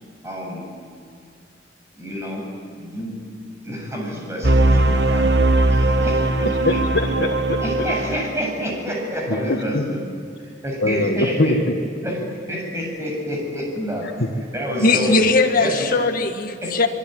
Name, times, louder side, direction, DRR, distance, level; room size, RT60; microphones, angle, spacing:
voice 1, 0.2-0.6 2.0-2.5 2.8-3.2 3.6-6.8 7.6-10.1 10.4-11.6 12.0-12.2 12.5-14.1 14.5-15.2 15.6-15.9 16.6-16.7, equal, 15° right, -1 dB, 7.4 m, -28 dB
sound 1, 4.4-8.4, right 2 dB, 60° right, 1.4 m, -19 dB
voice 2, 6.5-7.6 9.3-9.8 10.8-12.1 14.2-14.3, left 1 dB, 75° left, 0 dB, 1.8 m, -23 dB
voice 3, 14.8-16.9, left 3 dB, 45° left, 4 dB, 2.0 m, -19 dB
26.0 x 22.5 x 9.2 m, 2.2 s
head